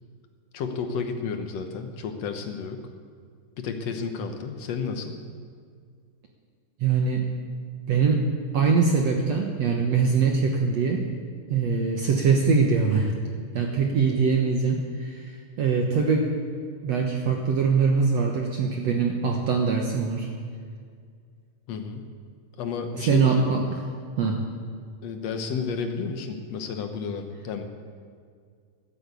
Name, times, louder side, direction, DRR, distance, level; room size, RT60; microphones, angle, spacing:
voice 1, 0.5-2.8 3.6-5.2 21.7-22.1 22.6-23.5 25.0-27.6, left 5 dB, 65° left, 6 dB, 1.7 m, -31 dB
voice 2, 6.8-7.2 7.9-8.2 8.5-11.0 11.5-13.1 13.5-15.3 15.6-16.3 16.8-20.3 23.1-23.6 24.2-24.4, right 5 dB, 60° right, 1 dB, 2.0 m, -22 dB
14.0 x 12.5 x 8.4 m, 2.1 s
omnidirectional pair, 4.1 m